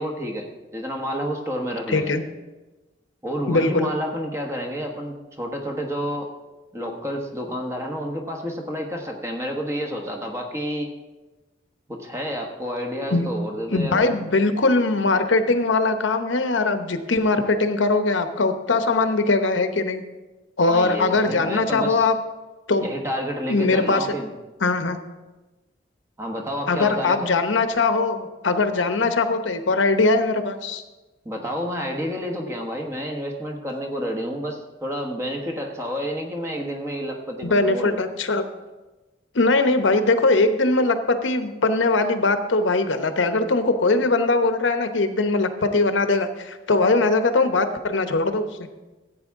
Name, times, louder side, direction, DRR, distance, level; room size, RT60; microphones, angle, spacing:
voice 1, 0.0-2.1 3.2-6.3 6.7-10.9 11.9-14.1 20.7-22.1 22.8-24.3 26.2-27.3 31.2-38.0, equal, 15° right, 2 dB, 1.1 m, -29 dB
voice 2, 1.9-2.2 3.5-3.9 13.1-13.3 13.7-20.0 20.6-22.2 22.7-22.9 23.5-24.1 24.6-25.0 26.7-30.8 37.4-38.4 39.3-48.5, left 3 dB, 90° left, 8 dB, 0.9 m, -21 dB
14.5 x 8.5 x 3.6 m, 1.1 s
head